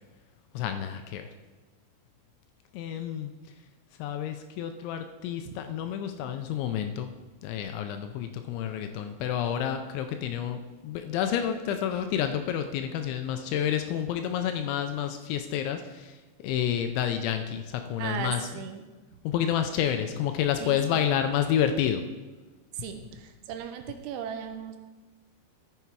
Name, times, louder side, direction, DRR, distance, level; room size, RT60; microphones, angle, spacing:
voice 1, 0.5-1.3 2.7-3.3 4.0-7.1 7.4-16.1 16.4-18.4 19.2-22.0, left 9 dB, 80° left, 7 dB, 2.8 m, -29 dB
voice 2, 18.0-18.9 19.1-19.2 20.6-21.0 22.7-24.8, right 8 dB, 80° right, 7 dB, 2.9 m, -37 dB
13.0 x 6.8 x 4.7 m, 1.2 s
omnidirectional pair, 5.6 m